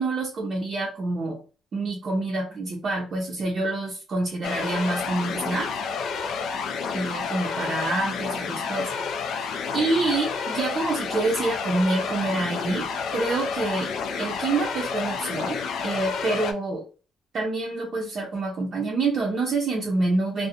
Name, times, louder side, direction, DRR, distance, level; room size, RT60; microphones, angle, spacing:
voice 1, 0.0-1.4 1.7-5.7 6.9-9.3 9.7-12.9 13.1-13.9 14.2-15.6 15.8-16.9 17.3-20.5, right 2 dB, 45° right, -2 dB, 0.5 m, -27 dB
sound 1, 4.4-16.5, left 5 dB, 70° left, 0.3 m, -30 dB
2.4 x 2.0 x 2.7 m, 0.35 s
cardioid pair, 135°, 0 cm